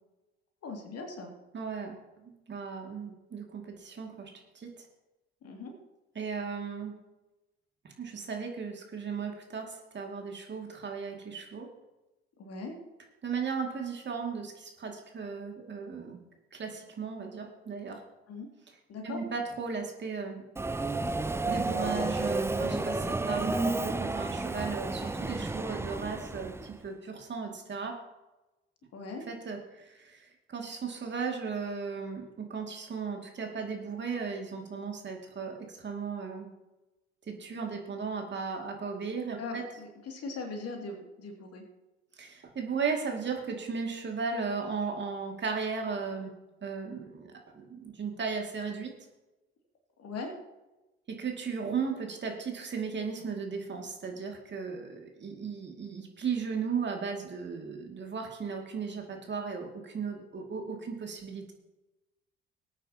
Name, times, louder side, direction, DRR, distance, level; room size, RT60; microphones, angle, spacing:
voice 1, 0.6-1.3 5.4-5.7 12.4-12.8 18.3-18.5 18.9-19.2 28.9-29.2 39.4-41.6 50.0-50.3, left 3 dB, 50° left, 3 dB, 2.5 m, -40 dB
voice 2, 1.5-4.7 6.2-6.9 8.0-11.7 13.2-16.2 16.5-18.0 19.0-20.4 20.7-20.8 21.1-28.0 29.3-36.5 37.3-39.6 42.2-46.3 46.6-47.3 47.5-48.9 51.1-61.5, right 5 dB, 35° right, 2 dB, 2.3 m, -36 dB
Subway metro underground, 20.5-26.8, right 2 dB, 10° right, 0.5 m, -31 dB
19.0 x 9.0 x 2.9 m, 1.0 s
figure-of-eight pair, 55°, 31 cm